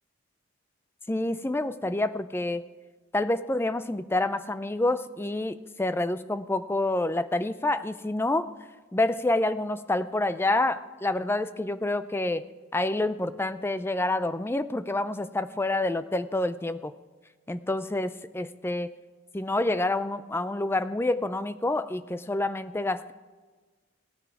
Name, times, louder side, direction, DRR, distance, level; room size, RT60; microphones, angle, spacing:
voice 1, 1.1-2.6 3.1-8.5 8.9-12.4 12.7-16.9 17.5-18.9 19.3-23.1, left 2 dB, 10° left, 13 dB, 0.4 m, -28 dB
17.0 x 9.3 x 4.7 m, 1.4 s
head